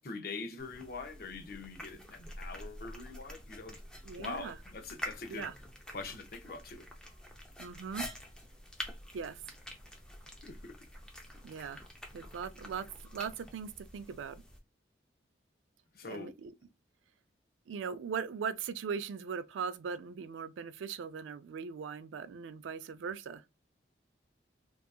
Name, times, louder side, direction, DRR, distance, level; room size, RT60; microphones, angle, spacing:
voice 1, 0.0-3.8 4.2-5.5 5.9-6.9 10.4-10.7 15.9-16.3, left 4 dB, 55° left, 0.5 m, -43 dB
sound 1, 0.6-14.6, equal, 5° left, 0.4 m, -47 dB
voice 2, 4.0-4.6 5.3-5.5 7.6-8.1 9.1-9.4 11.4-11.8 12.1-12.9 13.1-14.4 16.1-16.5 17.7-23.4, right 6 dB, 90° right, 0.3 m, -39 dB
2.7 x 2.4 x 2.3 m
head